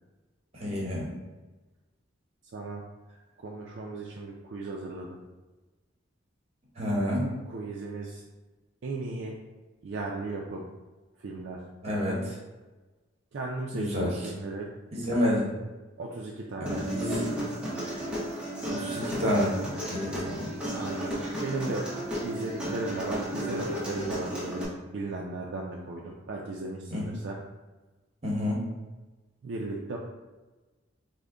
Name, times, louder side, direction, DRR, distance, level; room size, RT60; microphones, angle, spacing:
voice 1, 0.5-1.1 6.8-7.3 11.8-12.3 13.7-14.1 14.9-15.5 16.6-17.3 18.7-19.6 19.9-20.5 26.9-27.0 28.2-28.6, left 1 dB, 30° right, -3 dB, 0.9 m, -29 dB
voice 2, 2.5-2.8 3.4-5.2 7.5-8.2 8.8-9.4 9.8-10.7 11.2-11.6 13.3-14.7 16.0-16.9 20.7-21.1 21.4-21.9 22.2-27.4 29.4-30.0, right 2 dB, 60° right, -2 dB, 0.4 m, -36 dB
Human voice, 16.7-24.6, right 1 dB, 5° right, 0.5 m, -33 dB
3.5 x 2.1 x 3.6 m, 1.2 s
head